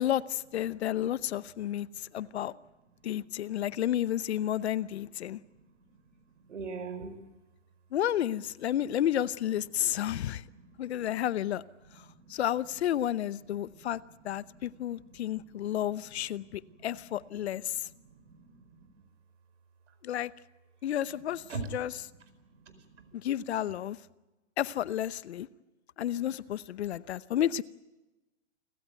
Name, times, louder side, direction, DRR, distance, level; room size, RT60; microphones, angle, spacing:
voice 1, 0.0-2.5 3.0-5.4 7.9-10.4 10.8-11.6 12.3-17.9 20.0-20.3 20.8-21.4 21.7-21.9 23.1-24.0 24.6-25.5 26.0-27.6, left 11 dB, 60° left, 0.9 m, -31 dB
voice 2, 1.7-2.2 3.0-3.3 5.3-7.2 9.8-11.0 11.9-12.3 13.5-19.0 19.9-20.0 21.4-23.1, right 4 dB, 75° right, 4.8 m, -47 dB
29.0 x 15.0 x 9.3 m
hypercardioid pair, 135°, 36 cm